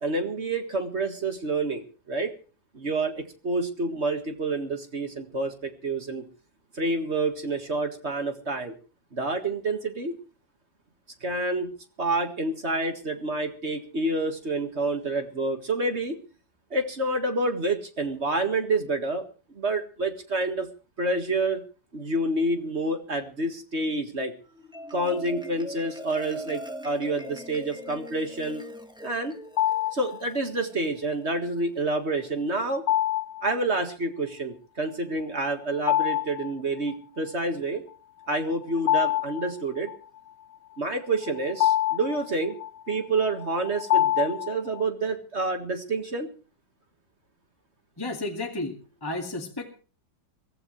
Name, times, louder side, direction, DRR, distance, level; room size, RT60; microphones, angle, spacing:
voice 1, 0.0-2.3 2.7-6.2 6.7-8.7 9.1-10.1 11.2-11.7 12.0-16.2 16.7-19.2 19.6-20.7 21.0-21.6 21.9-24.3 24.9-28.6 29.0-29.3 29.9-32.8 33.4-37.8 38.3-39.9 40.8-42.6 42.9-46.3, right 2 dB, 40° right, 6 dB, 1.9 m, -28 dB
Marimba xylophone, 24.4-31.1, equal, 5° right, 1.3 m, -41 dB
sound 1, 29.6-30.2 32.9-33.5 35.8-36.5 36.9-37.0 38.4-40.0 40.9-44.8, left 12 dB, 55° left, 1.7 m, -26 dB
voice 2, 48.0-49.8, left 2 dB, 10° left, 1 dB, 2.0 m, -33 dB
23.0 x 15.5 x 3.2 m, 0.38 s
omnidirectional pair, 2.0 m